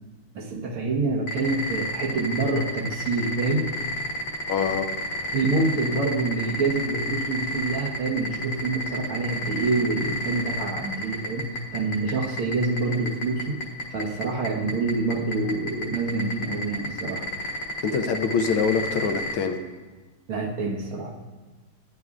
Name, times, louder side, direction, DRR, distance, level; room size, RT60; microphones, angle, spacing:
voice 1, 0.4-3.7 5.3-13.6 13.9-17.3 20.3-21.1, right 3 dB, 85° right, 0 dB, 1.9 m, -26 dB
sound 1, 1.3-19.4, left 1 dB, 55° left, 1.7 m, -30 dB
voice 2, 4.5-4.9 17.8-19.6, left 6 dB, 80° left, 7 dB, 1.6 m, -24 dB
14.0 x 9.3 x 2.4 m, 1.3 s
omnidirectional pair, 2.3 m